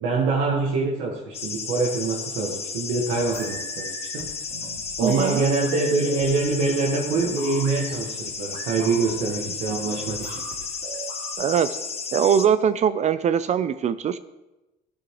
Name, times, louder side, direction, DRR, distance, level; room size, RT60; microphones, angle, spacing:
voice 1, 0.0-4.3 5.0-10.4, right 3 dB, 80° right, -2 dB, 1.6 m, -25 dB
sound 1, 1.3-12.5, left 5 dB, 35° left, 1.2 m, -33 dB
sound 2, 2.9-11.3, right 4 dB, 60° right, 2.4 m, -42 dB
voice 2, 5.0-5.4 11.4-11.7 12.1-14.2, right 8 dB, 40° right, 13 dB, 0.5 m, -22 dB
13.5 x 10.0 x 3.1 m, 1.0 s
cardioid pair, 115°, 19 cm